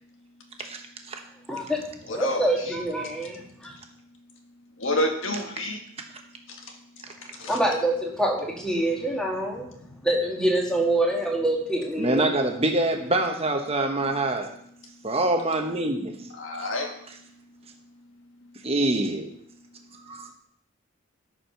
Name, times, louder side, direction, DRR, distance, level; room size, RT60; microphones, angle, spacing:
voice 1, 1.5-3.7 7.5-9.7 10.0-12.3, right 1 dB, 5° left, -1 dB, 1.8 m, -26 dB
voice 2, 2.1-2.7 4.8-5.8 6.5-7.6 9.7-10.1 14.8-15.1 16.3-17.2, left 1 dB, 70° left, 3 dB, 1.7 m, -31 dB
voice 3, 12.0-14.5 15.0-16.3 18.6-19.3 20.1-20.3, right 2 dB, 30° right, 4 dB, 1.0 m, -25 dB
13.5 x 4.9 x 5.8 m, 0.69 s
head